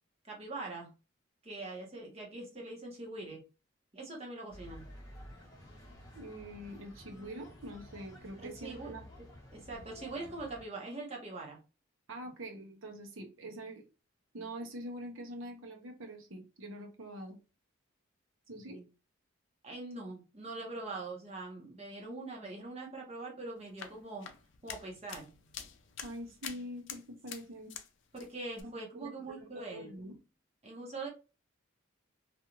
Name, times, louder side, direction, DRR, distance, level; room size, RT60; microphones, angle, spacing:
voice 1, 0.2-0.9 1.4-3.4 3.9-4.8 8.4-8.9 9.5-11.6 18.7-18.8 19.6-24.3 24.6-25.3 28.1-29.9 30.6-31.1, right 2 dB, 30° right, -1 dB, 0.9 m, -43 dB
sound 1, 4.5-10.6, left 1 dB, 15° left, 0.9 m, -52 dB
voice 2, 6.1-9.1 12.1-13.9 14.3-17.4 18.5-18.8 26.0-27.7 28.6-30.2, right 1 dB, 70° right, 3 dB, 0.8 m, -45 dB
sound 2, 23.6-27.9 28.1-28.6, left 8 dB, 60° left, 0.4 m, -47 dB
2.5 x 2.3 x 2.9 m, 0.31 s
head